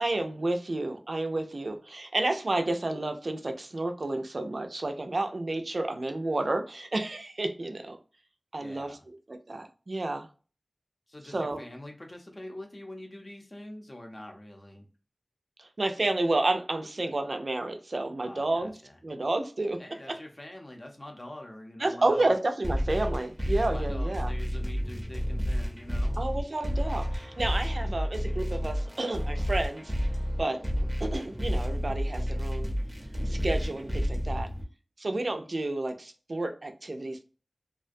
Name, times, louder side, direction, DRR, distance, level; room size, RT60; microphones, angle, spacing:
voice 1, 0.0-8.0 8.5-9.0 9.3-10.3 11.3-11.6 15.6-18.7 19.0-19.8 20.1-20.2 21.8-24.3 26.2-29.9 30.4-30.6 31.0-32.7 33.3-34.5 35.0-37.2, right 2 dB, 70° right, 0.4 m, -30 dB
voice 2, 8.6-9.0 11.1-14.9 18.2-19.0 19.8-22.3 23.7-26.3, left 1 dB, 40° left, 0.6 m, -45 dB
sound 1, 22.6-34.6, equal, 10° right, 0.6 m, -30 dB
2.4 x 2.2 x 2.5 m
wide cardioid pair, 55°, 0 cm